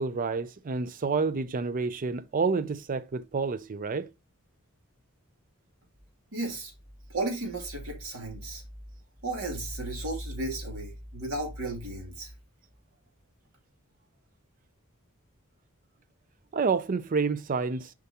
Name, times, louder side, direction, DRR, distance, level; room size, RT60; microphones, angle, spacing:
voice 1, 0.0-4.1 16.5-17.9, right 4 dB, 40° right, 0.5 m, -29 dB
voice 2, 6.3-6.7 7.1-8.6 9.2-12.3, right 2 dB, 75° right, 2.6 m, -34 dB
6.7 x 5.1 x 2.8 m
head